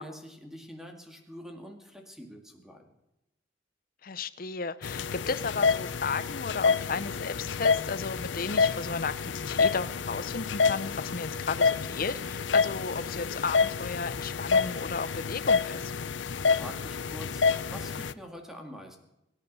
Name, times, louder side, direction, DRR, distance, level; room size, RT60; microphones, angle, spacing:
voice 1, 0.0-2.8 16.1-19.0, equal, ahead, 3 dB, 2.3 m, -45 dB
voice 2, 4.0-15.9, left 4 dB, 50° left, 14 dB, 0.7 m, -34 dB
sound 1, 4.8-18.1, left 5 dB, 85° left, 0.6 m, -28 dB
24.0 x 10.5 x 5.6 m, 0.91 s
head